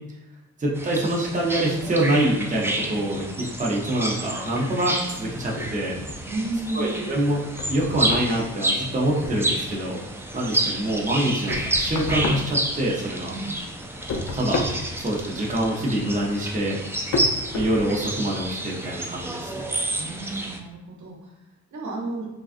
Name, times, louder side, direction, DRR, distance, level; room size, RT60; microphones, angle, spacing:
voice 1, 0.6-3.2 3.6-5.9 6.7-7.4 7.7-10.0 10.3-13.3 14.3-14.6 15.0-16.8 17.5-19.7, right 1 dB, 25° right, -3 dB, 0.7 m, -25 dB
sound 1, 0.7-20.6, right 1 dB, 10° right, 0.3 m, -30 dB
sound 2, 5.6-6.6 7.0-9.9 10.2-13.3 13.6-18.5, left 2 dB, 60° left, 0.5 m, -32 dB
voice 2, 6.3-7.0 13.3-13.6 20.0-21.3 21.7-22.3, right 2 dB, 70° right, -3 dB, 0.9 m, -32 dB
3.5 x 2.3 x 2.5 m, 0.96 s
cardioid pair, 85°, 31 cm